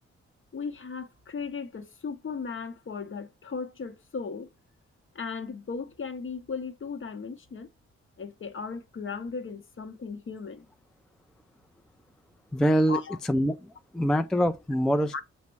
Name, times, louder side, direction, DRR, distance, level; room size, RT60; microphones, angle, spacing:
voice 1, 0.5-4.5 5.1-7.7 8.2-10.7 12.9-13.2 15.1-15.2, left 5 dB, 40° left, 0.7 m, -36 dB
voice 2, 12.5-15.2, equal, ahead, 0.3 m, -25 dB
5.8 x 2.1 x 4.4 m
supercardioid pair, 40°, 30 cm